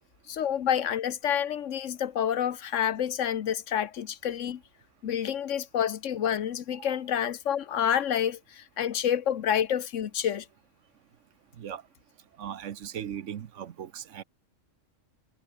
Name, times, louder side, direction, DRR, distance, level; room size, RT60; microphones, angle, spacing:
voice 1, 0.3-4.6 5.0-10.5, left 9 dB, 75° left, 1.2 m, -28 dB
voice 2, 12.4-14.2, right 9 dB, 75° right, 1.2 m, -38 dB
omnidirectional pair, 1.3 m